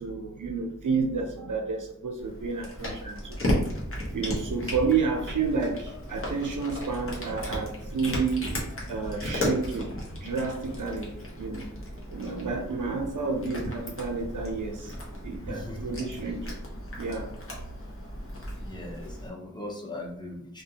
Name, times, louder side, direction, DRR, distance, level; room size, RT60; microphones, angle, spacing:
voice 1, 0.0-3.4 4.1-8.5 8.9-11.7 12.1-14.9 15.2-16.6 17.0-17.3, right 4 dB, 80° right, 3 dB, 0.6 m, -30 dB
Cat, 2.2-19.3, left 1 dB, 45° left, 0.8 m, -35 dB
voice 2, 15.5-16.0 18.6-20.6, left 1 dB, 15° left, -2 dB, 0.7 m, -39 dB
2.4 x 2.2 x 2.7 m, 0.73 s
wide cardioid pair, 50°, 31 cm